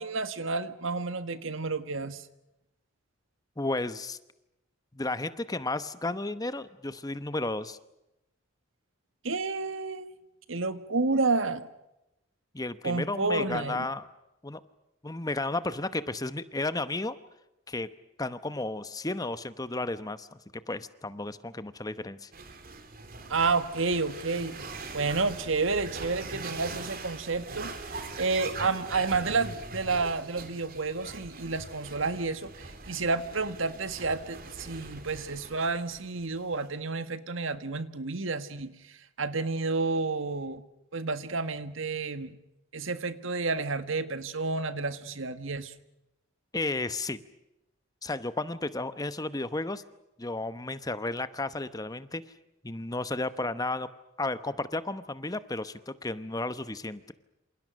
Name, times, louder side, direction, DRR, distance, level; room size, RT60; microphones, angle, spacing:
voice 1, 0.0-2.3 9.2-10.1 10.5-11.7 12.8-13.9 23.3-24.6 24.9-40.6 40.9-42.3 42.7-45.7, right 3 dB, 65° right, 11 dB, 1.7 m, -30 dB
voice 2, 3.6-4.2 4.9-7.8 12.5-14.1 14.4-14.6 15.0-17.2 17.7-17.9 18.2-20.4 20.7-22.3 46.5-47.2 48.0-49.8 50.2-52.2 52.6-53.9 54.2-57.1, left 2 dB, 15° left, 13 dB, 0.9 m, -33 dB
sound 1, 22.3-36.7, right 3 dB, 45° right, 3.3 m, -42 dB
28.0 x 27.5 x 6.4 m, 0.91 s
head